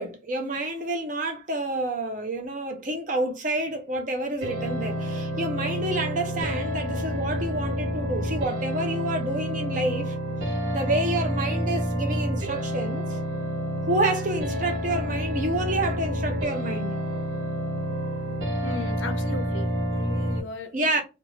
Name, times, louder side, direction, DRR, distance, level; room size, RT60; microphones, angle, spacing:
voice 1, 0.0-10.1 10.7-13.2 13.8-16.9 20.7-21.0, right 1 dB, 40° right, 0.6 m, -28 dB
sound 1, 4.4-20.4, equal, 70° right, 0.9 m, -29 dB
voice 2, 18.6-20.7, left 3 dB, 80° left, 0.6 m, -37 dB
2.6 x 2.3 x 3.0 m
head